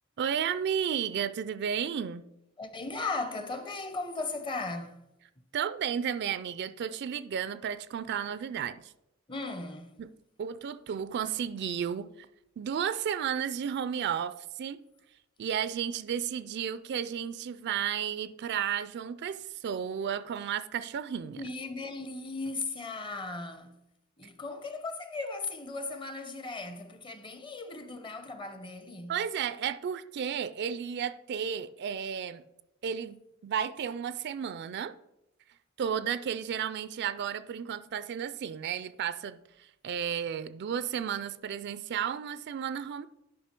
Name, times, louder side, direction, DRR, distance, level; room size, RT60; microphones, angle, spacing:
voice 1, 0.2-2.3 5.5-8.9 10.0-10.1 10.4-12.3 12.6-14.8 15.4-21.4 29.1-32.4 32.8-34.9 35.8-43.1, right 8 dB, 55° right, 0.3 m, -33 dB
voice 2, 2.6-5.0 9.3-10.0 21.4-23.8 24.2-29.2, left 3 dB, 25° left, 0.7 m, -37 dB
10.0 x 5.4 x 4.4 m
head